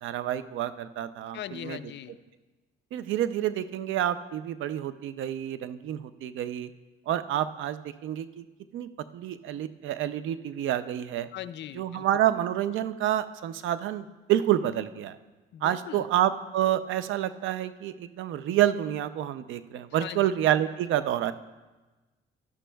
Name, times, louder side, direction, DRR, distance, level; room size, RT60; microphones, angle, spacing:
voice 1, 0.0-1.8 2.9-6.7 7.1-8.4 8.7-11.3 11.8-15.2 15.6-21.3, right 12 dB, 80° right, 13 dB, 0.5 m, -28 dB
voice 2, 1.3-2.2 11.3-12.1 15.5-16.1 20.0-20.3, left 11 dB, 65° left, 15 dB, 0.4 m, -40 dB
12.0 x 11.5 x 2.3 m, 1.2 s
cardioid pair, 90°, 20 cm